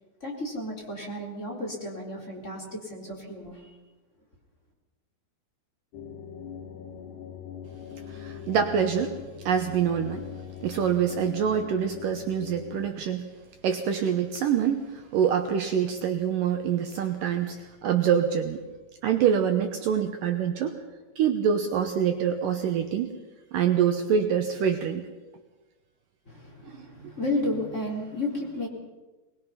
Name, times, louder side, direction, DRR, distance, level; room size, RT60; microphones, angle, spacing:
voice 1, 0.2-3.7 26.3-28.7, left 1 dB, 20° left, -1 dB, 3.6 m, -32 dB
sound 1, 5.9-12.9, left 8 dB, 85° left, 3.8 m, -41 dB
voice 2, 8.1-9.2 9.5-10.2 10.6-13.3 13.6-18.6 19.0-20.8 21.2-23.2 23.5-25.1 26.7-26.9, right 8 dB, 70° right, 5 dB, 2.4 m, -25 dB
21.5 x 21.5 x 5.8 m, 1.2 s
omnidirectional pair, 4.6 m